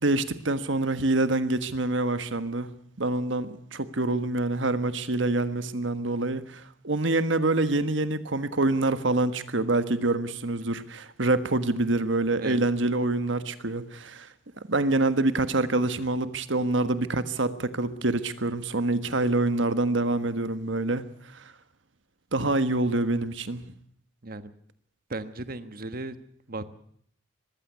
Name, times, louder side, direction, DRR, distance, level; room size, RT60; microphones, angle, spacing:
voice 1, 0.0-2.7 3.0-14.3 14.7-21.4 22.3-23.6, right 2 dB, 65° right, 1.5 m, -26 dB
voice 2, 25.1-26.2 26.5-26.7, right 2 dB, 45° right, 1.3 m, -36 dB
21.5 x 15.5 x 8.2 m
head